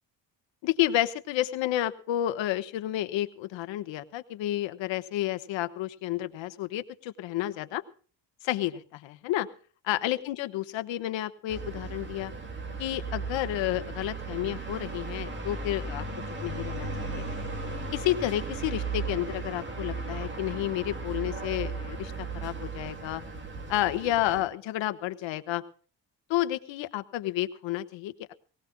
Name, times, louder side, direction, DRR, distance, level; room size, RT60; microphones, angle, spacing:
voice 1, 0.6-7.8 8.4-9.5 9.8-12.3 12.8-16.0 16.4-17.2 17.9-23.2 23.7-25.6 26.3-28.3, left 14 dB, 80° left, 10 dB, 1.2 m, -30 dB
sound 1, 11.5-24.4, right 3 dB, 25° right, 2.2 m, -36 dB
23.0 x 18.0 x 2.2 m, 0.41 s
cardioid pair, 170°, 44 cm